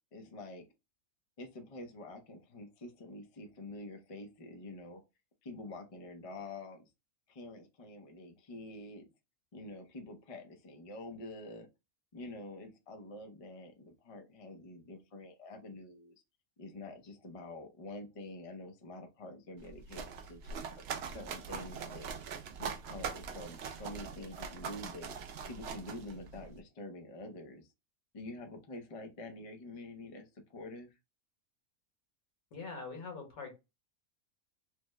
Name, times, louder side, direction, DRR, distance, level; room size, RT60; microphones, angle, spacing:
voice 1, 0.1-0.7 1.4-5.0 5.4-6.9 7.3-9.0 9.5-11.7 12.1-16.2 16.6-20.6 21.0-22.1 22.6-25.1 25.4-27.7 28.1-31.0, left 2 dB, 55° left, 0.3 m, -47 dB
sound 1, 19.6-26.6, right 6 dB, 65° right, 0.6 m, -42 dB
voice 2, 32.5-33.5, left 4 dB, 70° left, 1.6 m, -43 dB
3.3 x 2.0 x 3.3 m
omnidirectional pair, 1.5 m